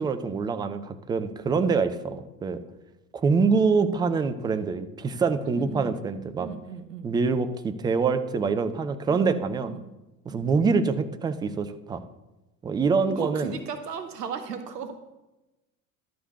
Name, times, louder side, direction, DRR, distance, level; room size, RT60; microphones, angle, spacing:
voice 1, 0.0-2.6 3.1-6.5 7.0-9.7 10.3-12.0 12.6-13.5, right 4 dB, 10° right, 10 dB, 0.3 m, -25 dB
voice 2, 5.4-6.0 6.4-7.1 9.1-9.3 9.6-9.9 10.3-10.5 13.1-15.0, right 6 dB, 75° right, 8 dB, 1.0 m, -36 dB
11.5 x 5.1 x 6.7 m, 1.0 s
figure-of-eight pair, 65°, 48 cm